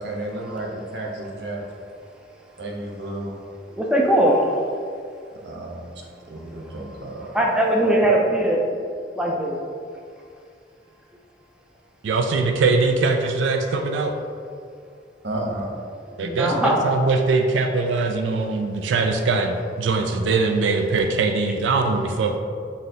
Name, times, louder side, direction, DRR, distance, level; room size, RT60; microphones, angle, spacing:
voice 1, 0.0-1.6 2.6-3.4 5.4-5.9 6.3-7.4 15.2-15.7, right 1 dB, 65° right, -1 dB, 0.7 m, -32 dB
voice 2, 3.8-4.6 7.3-8.6 9.2-9.6 16.2-16.8, right 1 dB, 5° right, -2 dB, 0.3 m, -20 dB
voice 3, 12.0-14.2 16.2-22.4, right 3 dB, 90° right, 4 dB, 0.3 m, -22 dB
4.0 x 2.6 x 3.8 m, 2.2 s
head